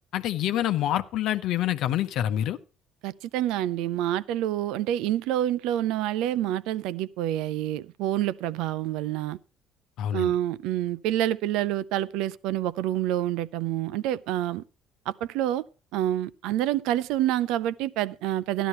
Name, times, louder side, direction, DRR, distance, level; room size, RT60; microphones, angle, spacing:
voice 1, 0.1-2.6 10.0-10.3, left 12 dB, 65° left, 0.8 m, -26 dB
voice 2, 3.0-9.4 10.1-14.6 15.1-15.6 15.9-18.7, right 12 dB, 70° right, 0.5 m, -27 dB
12.5 x 11.0 x 4.3 m
hypercardioid pair, 60°, 0 cm